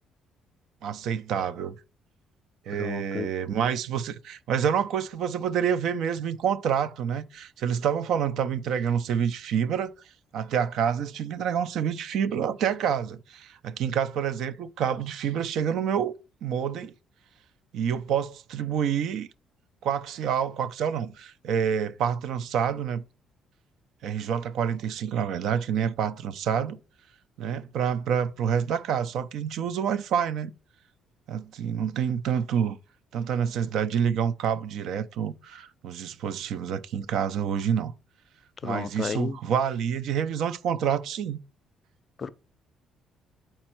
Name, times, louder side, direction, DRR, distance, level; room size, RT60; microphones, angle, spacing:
voice 1, 0.8-1.7 2.7-9.9 10.3-16.1 16.4-16.9 17.7-19.3 19.8-23.0 24.0-26.8 27.4-30.5 31.3-32.8 33.1-37.9 38.6-41.4, right 8 dB, 70° right, 0.5 m, -27 dB
voice 2, 2.7-3.3 38.6-39.4 42.2-42.3, left 6 dB, 35° left, 0.5 m, -32 dB
8.6 x 4.4 x 4.4 m
cardioid pair, 135°, 0 cm